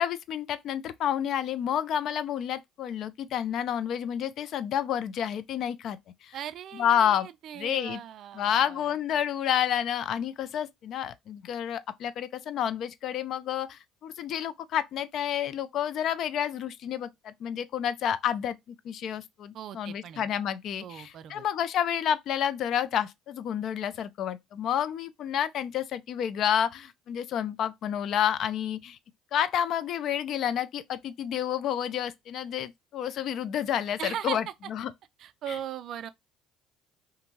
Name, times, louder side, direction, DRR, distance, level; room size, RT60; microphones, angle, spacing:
voice 1, 0.0-6.3 6.7-7.3 7.6-8.0 8.4-29.0 29.3-34.9 35.5-35.6, left 9 dB, 60° left, 0.3 m, -30 dB
voice 2, 6.3-9.0 19.5-20.3 20.8-21.4 34.0-34.4 35.2-36.1, right 10 dB, 60° right, 0.3 m, -39 dB
2.7 x 2.5 x 2.7 m
hypercardioid pair, 65°, 0 cm